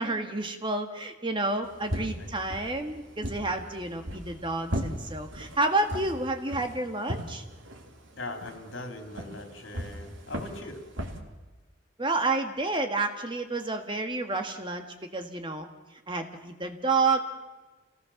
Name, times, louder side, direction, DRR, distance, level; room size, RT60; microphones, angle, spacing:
voice 1, 0.0-7.4 12.0-15.7 16.1-17.2, right 3 dB, 25° right, 5 dB, 1.7 m, -30 dB
sound 1, 1.6-11.2, equal, 85° right, 2.8 m, -38 dB
voice 2, 1.9-2.3 3.5-3.7 8.2-10.8, left 2 dB, 80° left, 4 dB, 3.3 m, -41 dB
27.5 x 18.0 x 7.2 m, 1.2 s
head